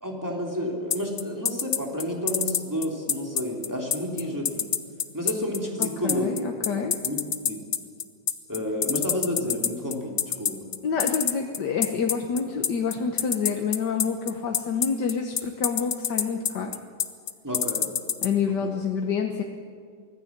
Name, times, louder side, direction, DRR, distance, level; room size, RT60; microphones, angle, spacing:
voice 1, 0.0-4.7 5.1-6.3 6.7-7.2 7.4-7.6 8.5-10.6 17.4-17.9 18.6-18.7, equal, 10° right, -1 dB, 3.2 m, -30 dB
sound 1, 0.9-18.3, left 8 dB, 50° left, 1.2 m, -25 dB
voice 2, 5.8-7.0 10.8-16.7 18.2-19.4, left 6 dB, 80° left, 3 dB, 1.8 m, -27 dB
24.5 x 16.0 x 7.4 m, 2.1 s
omnidirectional pair, 1.8 m